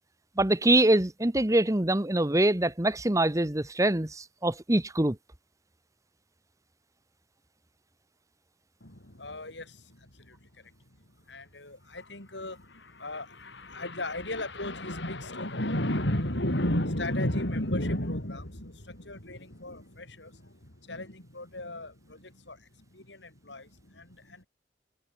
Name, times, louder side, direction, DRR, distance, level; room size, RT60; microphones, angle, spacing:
voice 1, 0.4-5.2, right 1 dB, 20° right, 1.2 m, -24 dB
voice 2, 8.8-10.5 11.3-24.5, left 1 dB, 75° left, 5.9 m, -34 dB
head